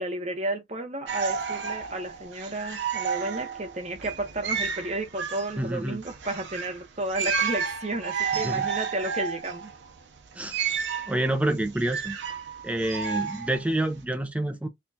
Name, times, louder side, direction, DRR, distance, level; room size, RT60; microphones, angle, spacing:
voice 1, 0.0-9.7, right 2 dB, 40° right, 0.9 m, -32 dB
sound 1, 1.1-14.0, right 6 dB, 80° right, 0.7 m, -32 dB
voice 2, 5.6-6.0 8.4-8.7 10.4-10.5 11.1-12.2 12.6-14.7, right 1 dB, 5° right, 0.5 m, -27 dB
4.4 x 2.3 x 2.7 m
head